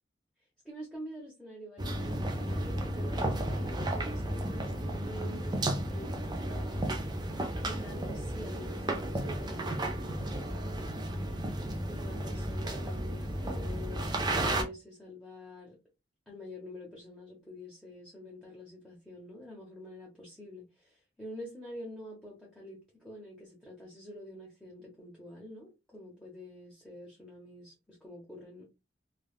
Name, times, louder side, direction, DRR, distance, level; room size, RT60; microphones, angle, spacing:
voice 1, 0.6-6.9 7.6-10.7 11.8-15.7 16.3-28.6, left 1 dB, 5° left, 0.9 m, -47 dB
sound 1, 1.8-14.6, right 1 dB, 25° right, 0.5 m, -33 dB
3.3 x 2.3 x 2.3 m
head